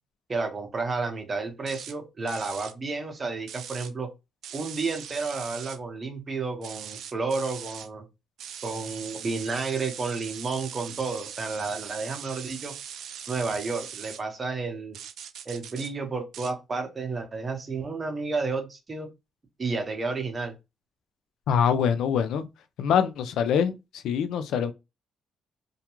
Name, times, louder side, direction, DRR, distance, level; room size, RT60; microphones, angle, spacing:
voice 1, 0.3-4.1 4.5-8.1 8.6-12.7 13.3-15.0 15.5-19.1 19.6-20.5, right 4 dB, 35° right, 0.8 m, -31 dB
sound 1, 1.7-1.9 2.3-2.7 3.5-3.9 4.4-5.8 6.6-7.9 8.4-14.2 14.9-15.9 16.3-16.5, right 9 dB, 75° right, 0.3 m, -41 dB
voice 2, 21.5-22.5 22.8-23.7 24.0-24.7, left 7 dB, 80° left, 0.4 m, -24 dB
2.3 x 2.2 x 2.9 m
cardioid pair, 90°, 0 cm